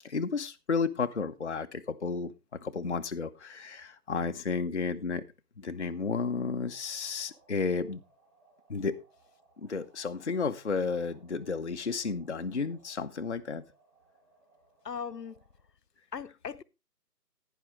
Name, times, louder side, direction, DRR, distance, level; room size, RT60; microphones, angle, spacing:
voice 1, 0.0-2.3 2.6-5.2 5.6-8.0 8.7-8.9 9.6-13.6, left 4 dB, 45° left, 0.6 m, -32 dB
sound 1, 5.7-15.7, right 3 dB, 10° right, 2.4 m, -65 dB
voice 2, 14.8-15.4 16.1-16.6, left 6 dB, 75° left, 0.8 m, -38 dB
11.5 x 9.9 x 3.1 m
figure-of-eight pair, 160°, 48 cm